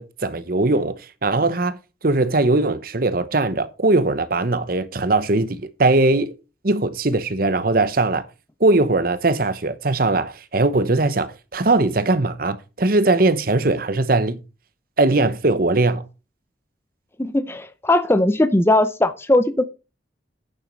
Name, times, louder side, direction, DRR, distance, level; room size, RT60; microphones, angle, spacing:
voice 1, 0.0-1.8 2.0-6.3 6.6-8.3 8.6-14.4 15.0-16.0, right 2 dB, 50° right, 0.9 m, -20 dB
voice 2, 17.2-19.7, left 1 dB, 15° left, 0.6 m, -19 dB
9.1 x 7.2 x 5.3 m
head